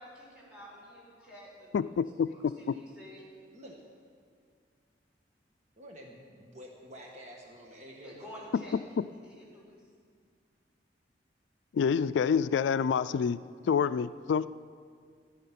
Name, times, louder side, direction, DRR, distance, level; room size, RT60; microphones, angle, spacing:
voice 1, 0.0-2.0 2.3-3.2 8.0-8.8 9.2-9.8, equal, 5° right, -6 dB, 4.5 m, -50 dB
voice 2, 1.7-2.8 11.7-13.4 13.7-14.5, left 6 dB, 85° left, 15 dB, 0.3 m, -27 dB
voice 3, 5.8-8.5, equal, 40° right, 0 dB, 1.4 m, -49 dB
14.0 x 11.5 x 5.9 m, 2.1 s
head